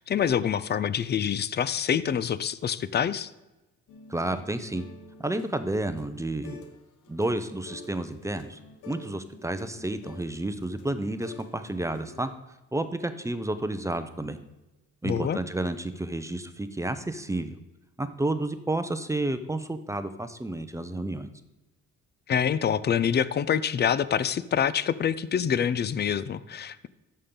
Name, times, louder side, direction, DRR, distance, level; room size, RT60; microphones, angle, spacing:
voice 1, 0.0-3.3 15.0-15.4 22.3-26.9, left 8 dB, 35° left, 17 dB, 0.4 m, -26 dB
sound 1, 3.9-6.8 7.0-12.3, left 3 dB, 80° left, 1.0 m, -49 dB
voice 2, 4.1-4.8 5.2-6.6 7.1-8.6 8.9-12.3 12.7-14.4 15.0-17.6 18.0-21.3, right 2 dB, 10° right, 10 dB, 0.6 m, -31 dB
13.5 x 5.5 x 3.8 m, 1.0 s
cardioid pair, 90°, 30 cm